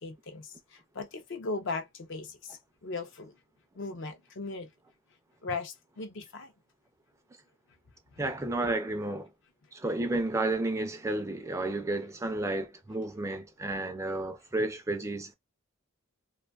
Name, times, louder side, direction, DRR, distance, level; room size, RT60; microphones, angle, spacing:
voice 1, 0.0-3.3 3.8-4.7 5.4-6.5, left 3 dB, 55° left, 0.5 m, -38 dB
voice 2, 8.2-9.3 9.7-15.3, right 2 dB, 15° right, 0.3 m, -32 dB
2.6 x 2.3 x 2.3 m
head